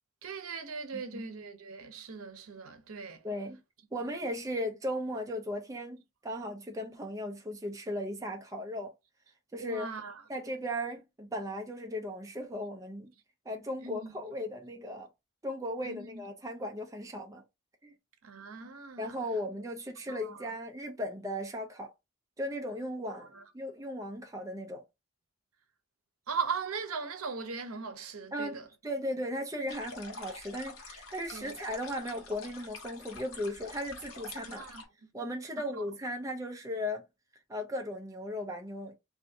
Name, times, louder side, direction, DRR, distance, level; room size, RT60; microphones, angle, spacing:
voice 1, 0.2-3.3 9.6-10.2 13.8-14.1 15.8-16.3 18.2-19.2 20.1-20.5 23.1-23.4 26.3-28.7 31.3-31.5 34.4-34.8 35.7-35.9, right 5 dB, 85° right, 0.7 m, -39 dB
voice 2, 3.2-3.6 3.9-8.9 9.5-9.9 10.3-13.1 13.5-15.1 15.4-17.4 17.8-17.9 19.0-21.9 22.4-24.8 28.3-34.6 35.1-37.1 37.5-38.9, equal, 15° right, 0.5 m, -37 dB
sound 1, 29.7-34.9, left 3 dB, 75° left, 1.1 m, -47 dB
3.4 x 2.6 x 2.7 m
head